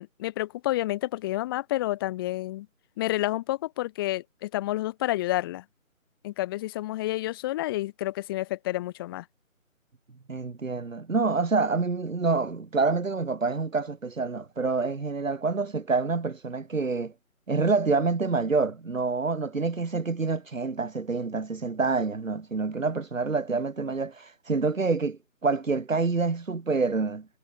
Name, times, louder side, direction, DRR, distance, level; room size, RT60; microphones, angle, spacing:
voice 1, 0.0-2.7 3.0-5.6 6.2-9.3, left 16 dB, 15° left, 3.5 m, -29 dB
voice 2, 10.3-17.1 17.5-27.3, right 4 dB, 65° right, 2.4 m, -27 dB
figure-of-eight pair, 155°, 42 cm